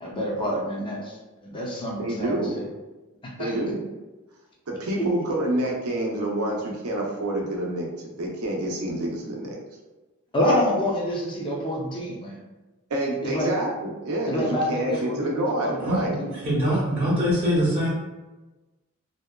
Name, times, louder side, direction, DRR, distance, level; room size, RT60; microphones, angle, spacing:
voice 1, 0.0-2.6 3.2-3.5 5.0-5.1 10.3-12.4 13.2-13.5 14.3-16.3, equal, 20° left, -3 dB, 0.5 m, -27 dB
voice 2, 2.0-2.6 3.4-3.8 4.7-7.9 8.2-9.6 12.9-16.2, right 1 dB, 75° right, 0 dB, 0.6 m, -27 dB
voice 3, 16.3-17.9, equal, 25° right, -10 dB, 0.6 m, -23 dB
2.7 x 2.2 x 2.2 m, 1.1 s
head